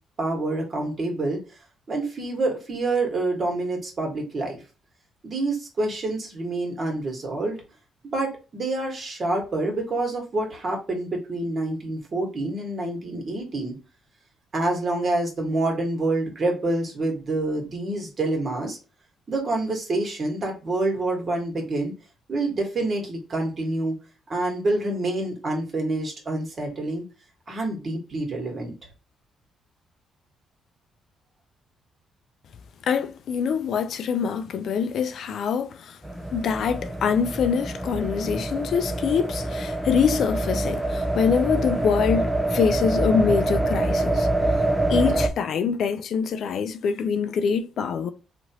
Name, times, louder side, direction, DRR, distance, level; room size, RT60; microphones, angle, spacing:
voice 1, 0.2-1.4 1.9-4.6 5.2-7.6 8.0-13.7 14.5-18.8 19.3-21.9 22.3-23.9 24.3-27.0 27.5-28.7, right 2 dB, 40° right, 1.4 m, -27 dB
voice 2, 32.8-36.0 36.3-44.3 44.9-48.1, left 6 dB, 65° left, 0.4 m, -24 dB
sound 1, 36.0-45.3, right 1 dB, 5° right, 0.4 m, -25 dB
3.0 x 2.4 x 2.8 m
cardioid pair, 90°, 0 cm